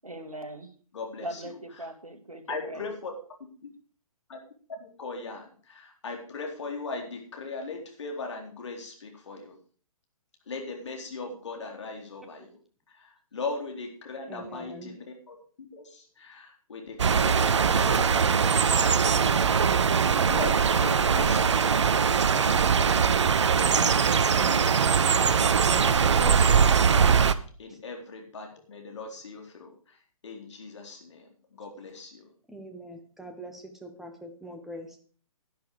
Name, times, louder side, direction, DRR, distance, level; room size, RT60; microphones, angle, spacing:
voice 1, 0.0-0.7 1.2-2.9, right 1 dB, 75° right, 2.0 m, -40 dB
voice 2, 0.9-1.9 2.5-3.1 3.4-3.5 4.3-4.4 4.8-9.6 10.5-12.6 12.9-15.4 15.7-23.1 23.6-25.1 25.9-26.5 27.6-32.3, left 3 dB, 55° left, 3.8 m, -39 dB
voice 3, 14.3-14.9 25.7-26.3 27.7-27.8 32.5-35.0, right 1 dB, ahead, 1.3 m, -43 dB
sound 1, 17.0-27.3, right 6 dB, 55° right, 0.8 m, -22 dB
11.5 x 11.0 x 4.9 m
figure-of-eight pair, 130°, 18 cm